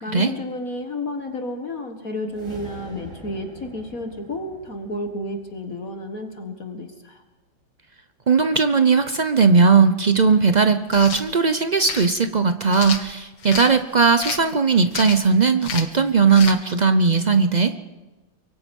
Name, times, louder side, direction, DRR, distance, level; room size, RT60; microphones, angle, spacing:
voice 1, 0.0-7.2, left 1 dB, 50° left, 5 dB, 2.1 m, -31 dB
sound 1, 2.2-6.6, right 1 dB, 40° right, 3.2 m, -44 dB
voice 2, 8.3-17.7, right 5 dB, 75° right, 9 dB, 0.4 m, -18 dB
sound 2, 10.9-11.2 11.8-12.1 12.7-13.7 14.2-14.5 14.9-15.3 15.6-16.0 16.3-16.6, left 6 dB, 70° left, 2.1 m, -30 dB
24.0 x 23.5 x 5.4 m, 1.2 s
omnidirectional pair, 2.0 m